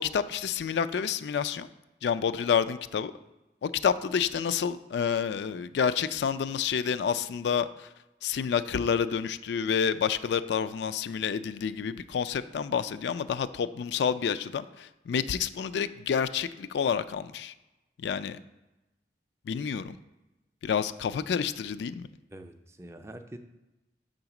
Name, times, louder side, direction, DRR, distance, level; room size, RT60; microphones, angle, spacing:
voice 1, 0.0-1.7 2.0-3.1 3.6-7.9 8.2-17.5 18.0-18.4 19.5-20.0 20.6-22.1, left 7 dB, 70° left, 12 dB, 0.3 m, -29 dB
voice 2, 22.3-23.4, right 1 dB, 15° right, 7 dB, 0.3 m, -45 dB
6.4 x 3.9 x 5.9 m, 1.0 s
head